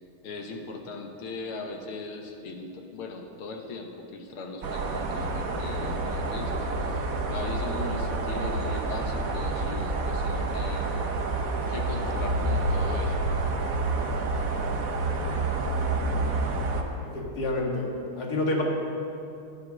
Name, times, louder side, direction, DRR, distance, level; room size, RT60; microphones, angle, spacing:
voice 1, 0.2-7.0 7.3-10.9 11.7-13.2, left 3 dB, 80° left, 3 dB, 2.0 m, -39 dB
sound 1, 4.6-16.8, right 2 dB, 50° right, 1.1 m, -28 dB
voice 2, 17.0-18.6, left 2 dB, 50° left, -1 dB, 2.1 m, -29 dB
11.5 x 10.0 x 6.2 m, 2.6 s
omnidirectional pair, 2.4 m